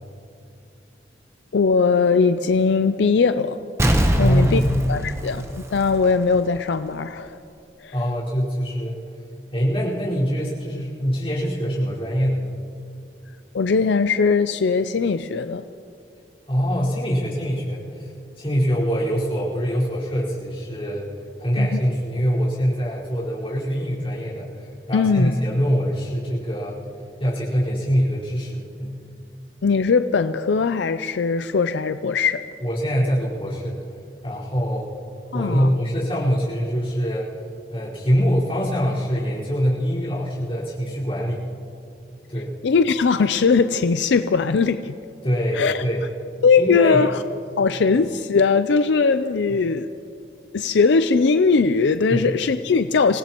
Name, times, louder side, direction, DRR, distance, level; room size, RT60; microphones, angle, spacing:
voice 1, 1.5-3.6 4.2-4.6 4.9-5.4 5.7-7.4 7.8-7.9 13.5-15.6 21.6-21.8 24.9-25.3 29.6-32.4 35.3-35.7 42.6-45.0 45.5-45.8 46.4-47.2 47.6-49.9 50.5-53.2, left 5 dB, 75° left, 10 dB, 0.4 m, -20 dB
Explosion, 3.8-6.4 6.7-6.8, equal, 15° right, 0.9 m, -22 dB
voice 2, 4.2-4.9 7.9-9.0 9.5-12.5 16.5-26.8 27.2-29.0 32.6-33.8 34.2-34.9 35.3-37.4 37.7-41.5 42.3-42.6 45.2-46.0 46.6-47.0 52.1-52.2, equal, 30° left, -7 dB, 4.6 m, -24 dB
27.0 x 17.5 x 3.0 m, 2.6 s
head